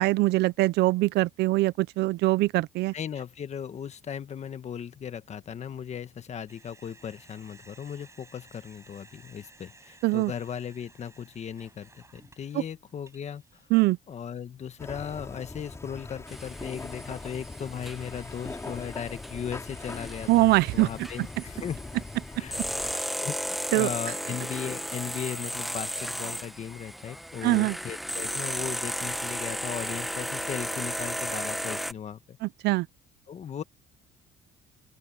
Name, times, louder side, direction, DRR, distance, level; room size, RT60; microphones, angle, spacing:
voice 1, 0.0-2.9 10.0-10.3 13.7-14.0 20.3-20.9 23.7-23.9 27.4-27.8 32.4-32.9, right 20 dB, 80° right, 0.5 m, -23 dB
voice 2, 2.9-13.4 14.1-21.8 22.4-22.6 22.9-23.4 23.7-32.4 33.3-33.6, left 8 dB, 40° left, 1.4 m, -37 dB
sound 1, 6.5-13.9, right 3 dB, 15° right, 7.5 m, -56 dB
sound 2, 14.8-22.9, left 3 dB, 15° left, 5.5 m, -41 dB
sound 3, 16.3-31.9, equal, ahead, 1.3 m, -35 dB
open air
cardioid pair, 110°, 17 cm